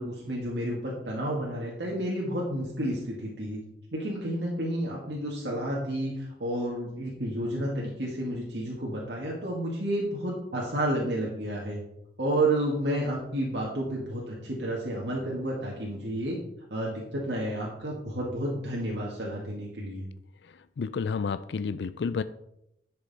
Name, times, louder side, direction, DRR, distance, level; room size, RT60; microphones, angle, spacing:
voice 1, 0.0-3.6 3.9-11.8 12.2-16.4 16.7-20.0, right 1 dB, 70° right, -3 dB, 1.9 m, -31 dB
voice 2, 20.8-22.2, left 5 dB, 70° left, 13 dB, 0.4 m, -30 dB
11.0 x 6.7 x 4.1 m, 0.80 s
head